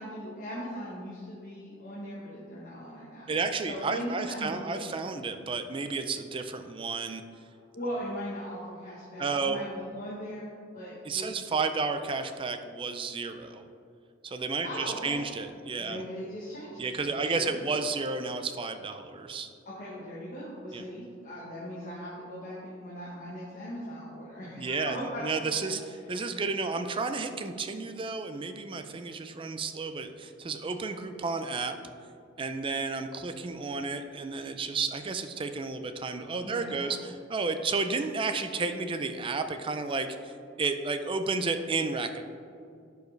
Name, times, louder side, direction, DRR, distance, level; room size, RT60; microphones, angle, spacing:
voice 1, 0.0-3.3 3.6-5.0 7.7-11.3 14.6-15.2 15.8-17.6 19.6-25.8 36.4-37.0, equal, 40° left, -6 dB, 1.2 m, -39 dB
voice 2, 3.3-7.2 9.2-9.6 11.1-13.7 14.2-16.0 16.8-19.5 20.7-20.8 24.6-25.8 26.1-31.8 32.4-42.3, right 4 dB, 25° right, 8 dB, 0.4 m, -32 dB
11.5 x 4.7 x 3.2 m, 2.4 s
head